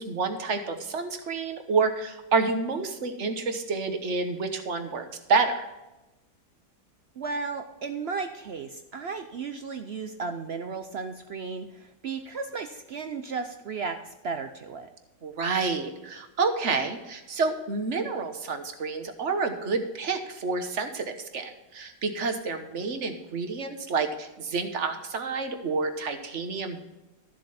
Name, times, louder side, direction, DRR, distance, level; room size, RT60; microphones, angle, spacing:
voice 1, 0.0-5.7 15.2-26.9, right 4 dB, 45° right, 7 dB, 1.3 m, -29 dB
voice 2, 7.2-14.9, right 4 dB, 70° right, 7 dB, 0.6 m, -34 dB
13.0 x 7.5 x 4.2 m, 1.0 s
omnidirectional pair, 1.9 m